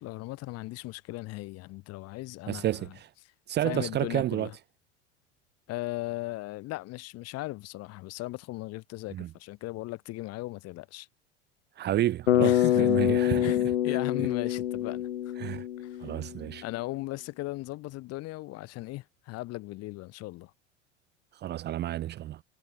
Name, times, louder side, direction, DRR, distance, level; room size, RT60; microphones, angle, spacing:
voice 1, 0.0-3.0 3.2-3.3 3.6-4.6 5.7-11.1 12.4-13.0 13.4-15.4 15.8-16.1 16.6-20.5, left 19 dB, 45° left, 3.6 m, -37 dB
voice 2, 2.5-3.1 3.5-4.5 9.1-9.3 11.8-13.5 15.4-15.6 16.0-16.6 21.4-22.4, right 13 dB, 30° right, 0.9 m, -30 dB
Bass guitar, 12.3-16.4, left 12 dB, 70° left, 1.1 m, -26 dB
figure-of-eight pair, 75°, 35 cm